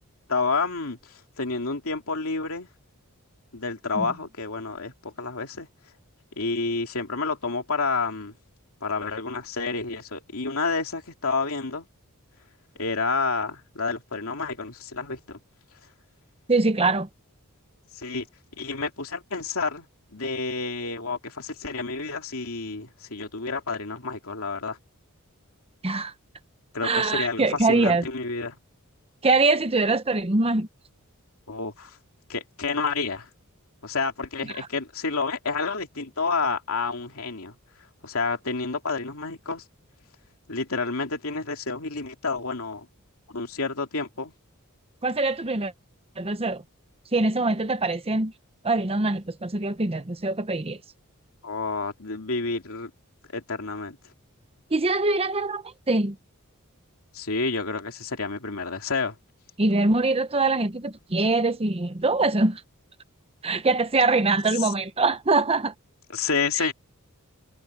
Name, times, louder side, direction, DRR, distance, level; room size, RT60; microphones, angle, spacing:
voice 1, 0.3-2.7 3.5-5.7 6.4-8.3 8.8-11.9 12.8-15.4 17.9-18.3 18.6-19.9 20.1-24.8 26.7-28.6 31.5-32.0 32.3-33.3 33.8-37.5 38.0-39.6 40.5-42.9 43.3-44.3 51.4-52.9 53.3-54.0 57.1-59.2 64.6-64.7 66.1-66.7, left 4 dB, 70° left, 2.9 m, -29 dB
voice 2, 16.5-17.1 25.8-26.1 26.8-28.0 29.2-30.7 34.6-34.7 45.0-45.7 46.2-46.6 47.1-48.3 48.6-50.8 54.7-56.2 59.6-62.6 63.4-65.7 66.6-66.7, right 3 dB, 25° right, 0.9 m, -23 dB
head